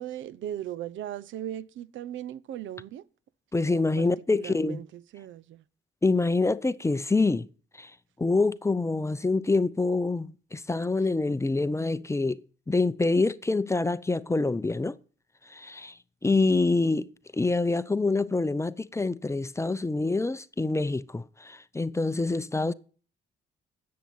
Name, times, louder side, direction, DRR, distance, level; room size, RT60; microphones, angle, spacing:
voice 1, 0.0-3.1 3.7-5.6 16.2-16.6, right 11 dB, 75° right, 0.7 m, -38 dB
voice 2, 3.5-4.8 6.0-7.5 7.7-15.0 15.5-22.7, left 3 dB, 15° left, 0.6 m, -26 dB
11.0 x 7.7 x 9.3 m
cardioid pair, 90°, 20 cm